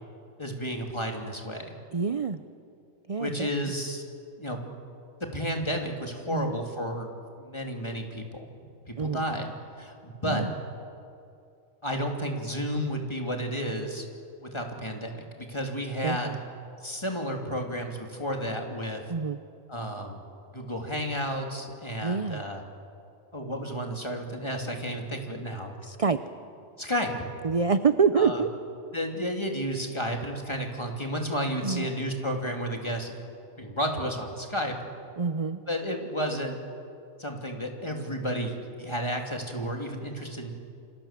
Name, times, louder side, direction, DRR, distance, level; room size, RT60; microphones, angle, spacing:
voice 1, 0.4-1.7 3.2-4.0 4.4-4.6 5.2-7.1 7.4-9.5 9.8-10.5 11.8-14.1 14.4-16.4 16.8-19.0 19.7-20.2 20.5-22.6 23.3-25.7 26.8-27.1 28.1-28.4 28.9-33.1 33.6-34.8 35.7-36.6 37.2-40.5, equal, 20° left, 2 dB, 3.0 m, -32 dB
voice 2, 1.9-2.4 3.1-3.5 6.3-6.6 9.0-9.2 10.2-10.5 16.0-16.4 19.1-19.4 22.0-22.4 25.8-26.2 27.4-28.5 31.6-31.9 35.2-35.6, right 5 dB, 35° right, 11 dB, 0.6 m, -26 dB
28.0 x 26.0 x 7.5 m, 2.5 s
omnidirectional pair, 1.4 m